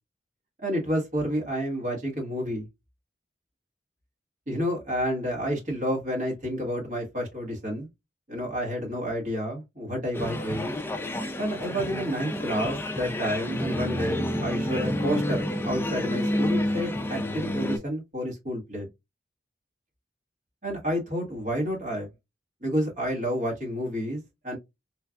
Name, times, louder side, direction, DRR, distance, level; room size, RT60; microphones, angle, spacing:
voice 1, 0.6-2.7 4.5-7.9 8.3-10.7 11.4-18.9 20.6-22.1 22.6-24.6, equal, 45° right, 1.4 m, -30 dB
sound 1, 10.1-17.8, left 1 dB, 10° left, 0.3 m, -29 dB
3.2 x 2.3 x 2.4 m
head